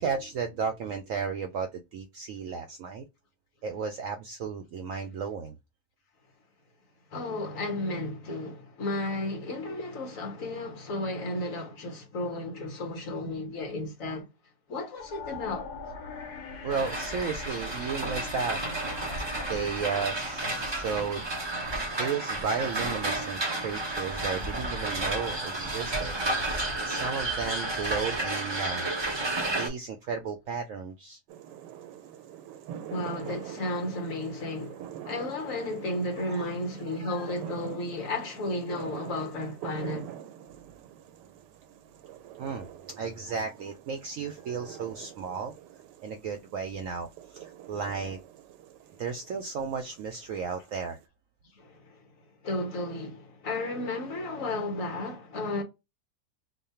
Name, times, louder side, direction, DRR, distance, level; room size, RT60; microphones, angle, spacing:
voice 1, 0.0-3.0 3.6-5.6 16.6-18.6 19.5-21.3 21.6-26.2 26.5-28.9 29.6-31.2 36.2-36.5 36.9-37.3 42.4-42.7 43.0-45.5 46.0-48.2 49.0-51.0, right 5 dB, 70° right, 0.8 m, -34 dB
voice 2, 7.1-14.2 14.7-15.7 32.9-40.1 51.6-51.7 52.4-55.6, left 2 dB, 55° left, 1.4 m, -33 dB
sound 1, 15.0-22.1, left 4 dB, 70° left, 1.2 m, -42 dB
sound 2, 16.7-29.7, right 2 dB, 40° right, 0.3 m, -32 dB
sound 3, 31.3-51.0, right 10 dB, 90° right, 1.2 m, -45 dB
3.1 x 2.2 x 4.2 m
omnidirectional pair, 1.8 m